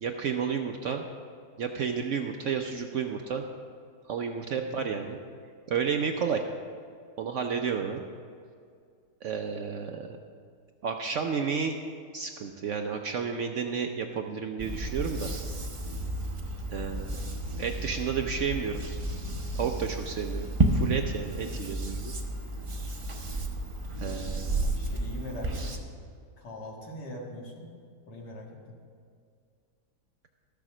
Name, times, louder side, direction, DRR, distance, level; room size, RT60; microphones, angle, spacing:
voice 1, 0.0-1.0 1.6-3.5 4.1-5.2 5.7-6.4 7.2-8.0 9.2-10.1 10.8-11.8 12.1-15.3 16.7-17.2 17.6-18.8 19.6-22.1 24.0-24.7, right 6 dB, 65° right, 4 dB, 0.7 m, -31 dB
sound 1, 14.6-25.8, right 2 dB, 40° right, 0.4 m, -32 dB
voice 2, 24.8-25.8 26.4-27.7 28.1-28.7, left 1 dB, 85° left, -1 dB, 2.3 m, -42 dB
12.5 x 6.9 x 6.1 m, 2.2 s
omnidirectional pair, 1.8 m